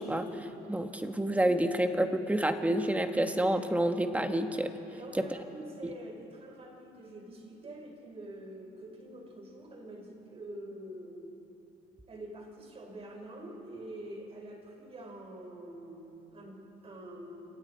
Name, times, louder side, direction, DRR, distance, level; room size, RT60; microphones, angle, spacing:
voice 1, 0.0-4.7 5.2-5.3, right 1 dB, 10° right, 6 dB, 1.4 m, -29 dB
voice 2, 4.9-11.4 12.1-17.6, right 1 dB, 35° right, 1 dB, 5.2 m, -46 dB
27.5 x 26.5 x 4.6 m, 3.0 s
cardioid pair, 110°, 17 cm